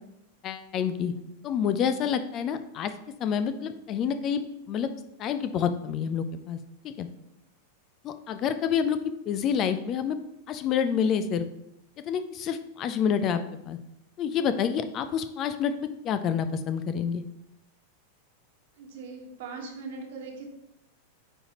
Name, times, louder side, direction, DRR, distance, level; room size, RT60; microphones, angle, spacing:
voice 1, 0.4-1.1 1.4-2.9 3.2-4.4 4.7-4.9 5.2-6.6 6.8-7.1 8.0-9.0 9.3-10.2 10.5-11.5 12.1-13.4 13.7-13.8 14.2-17.2, left 7 dB, 35° left, 10 dB, 0.4 m, -28 dB
voice 2, 18.8-20.5, right 4 dB, 55° right, 2 dB, 1.3 m, -40 dB
9.0 x 3.9 x 2.9 m, 0.82 s
figure-of-eight pair, 90°, 0 cm